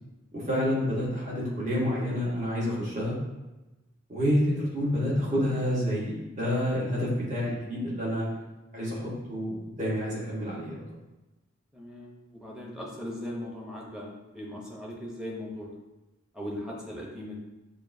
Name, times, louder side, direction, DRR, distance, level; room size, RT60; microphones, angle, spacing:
voice 1, 0.3-3.1 4.1-8.3 8.7-9.0 9.3-10.8, equal, 35° right, -6 dB, 1.2 m, -28 dB
voice 2, 11.7-15.7 16.3-17.4, left 1 dB, 5° right, -4 dB, 0.7 m, -39 dB
6.7 x 2.3 x 2.6 m, 1.1 s
head